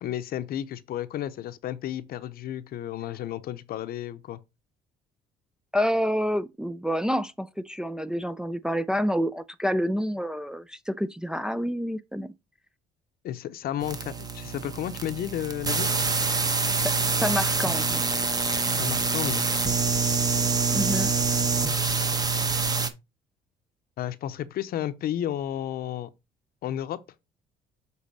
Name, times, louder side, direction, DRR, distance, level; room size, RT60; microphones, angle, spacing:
voice 1, 0.0-4.4 13.2-15.9 18.8-19.5 24.0-26.1 26.6-27.0, left 11 dB, 65° left, 0.7 m, -32 dB
voice 2, 5.7-12.3 16.8-18.0 20.7-21.1, equal, 5° right, 0.4 m, -28 dB
sound 1, 13.8-22.9, right 4 dB, 20° right, 1.0 m, -26 dB
7.3 x 4.2 x 4.1 m
cardioid pair, 110°, 17 cm